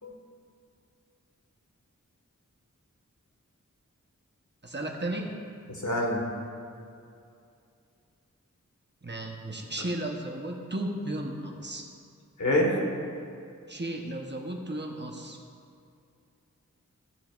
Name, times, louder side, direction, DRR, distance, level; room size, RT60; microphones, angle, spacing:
voice 1, 4.6-5.4 9.0-11.9 13.7-15.4, right 1 dB, 35° right, 1 dB, 1.1 m, -34 dB
voice 2, 5.8-6.2 12.4-12.8, left 1 dB, 70° left, -1 dB, 1.8 m, -25 dB
15.0 x 7.5 x 2.6 m, 2.4 s
wide cardioid pair, 55°, 31 cm